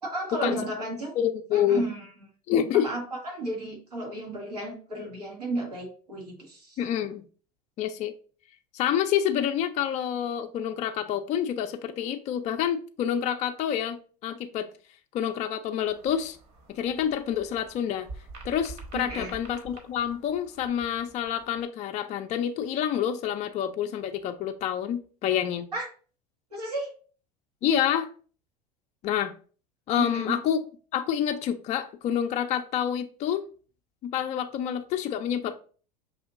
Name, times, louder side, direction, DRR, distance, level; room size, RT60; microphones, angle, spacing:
voice 1, 0.0-1.1 1.5-2.1 2.7-6.8 18.9-19.3 25.7-25.9 26.5-26.9 30.0-30.4, right 1 dB, 90° right, -1 dB, 1.3 m, -33 dB
voice 2, 1.2-1.8 2.5-2.9 6.8-7.2 7.8-8.1 8.7-14.7 15.1-16.4 16.7-18.1 18.4-25.7 27.6-28.1 29.0-29.3 29.9-30.6 30.9-33.4 34.0-35.6, left 9 dB, 35° left, 7 dB, 0.4 m, -28 dB
sound 1, 15.9-21.6, right 3 dB, 50° right, 1.3 m, -47 dB
5.4 x 2.8 x 2.5 m, 0.40 s
hypercardioid pair, 80°, 20 cm